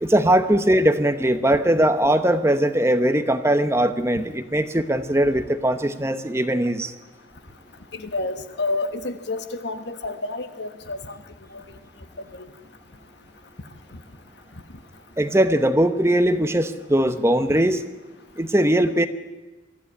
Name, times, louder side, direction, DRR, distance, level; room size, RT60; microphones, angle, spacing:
voice 1, 0.0-6.9 15.2-17.8 18.4-19.1, right 1 dB, 15° right, 9 dB, 1.0 m, -20 dB
voice 2, 7.9-11.2 12.3-12.5, left 2 dB, 65° left, 10 dB, 1.4 m, -29 dB
23.5 x 14.0 x 9.9 m, 1.2 s
head